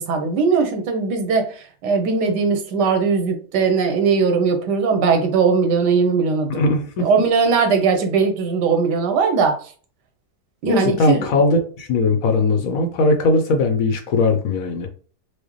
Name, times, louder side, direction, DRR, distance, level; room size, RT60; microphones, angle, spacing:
voice 1, 0.0-6.6 7.0-9.7 10.6-11.3, right 5 dB, 85° right, 5 dB, 1.4 m, -19 dB
voice 2, 6.5-7.1 10.6-14.9, left 3 dB, 65° left, 3 dB, 1.0 m, -19 dB
4.7 x 2.1 x 3.1 m, 0.40 s
omnidirectional pair, 1.8 m